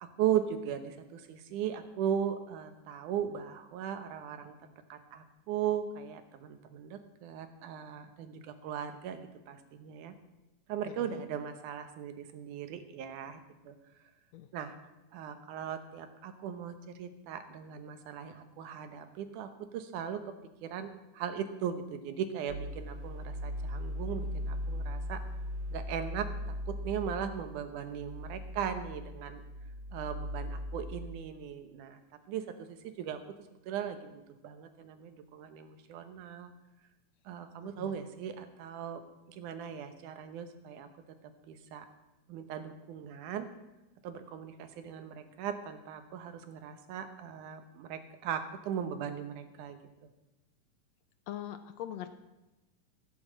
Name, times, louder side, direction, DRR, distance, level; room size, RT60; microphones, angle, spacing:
voice 1, 0.0-4.6 4.9-10.1 10.7-13.8 14.5-14.8 15.1-20.3 20.6-25.2 25.7-26.3 26.7-29.4 29.9-32.0 32.3-33.2 33.7-36.5 37.3-39.0 39.3-41.2 41.5-41.9 42.3-43.5 44.0-49.8, right 9 dB, 85° right, 9 dB, 2.6 m, -38 dB
sound 1, 22.5-31.1, left 1 dB, 50° right, 2.4 m, -39 dB
voice 2, 51.3-52.1, left 11 dB, 75° left, 9 dB, 1.7 m, -41 dB
16.0 x 7.1 x 7.5 m, 1.0 s
omnidirectional pair, 3.5 m